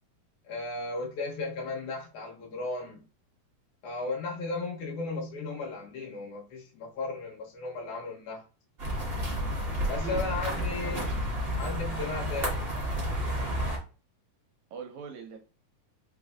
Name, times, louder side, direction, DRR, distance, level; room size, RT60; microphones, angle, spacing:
voice 1, 0.4-3.0 3.8-8.4 9.9-11.2 11.6-12.7, left 3 dB, 75° left, 2.4 m, -35 dB
sound 1, 8.8-13.8, equal, 40° right, 0.8 m, -31 dB
voice 2, 9.9-10.2 10.5-11.1 14.7-15.4, right 6 dB, 80° right, 1.9 m, -42 dB
4.7 x 3.2 x 2.4 m
omnidirectional pair, 3.5 m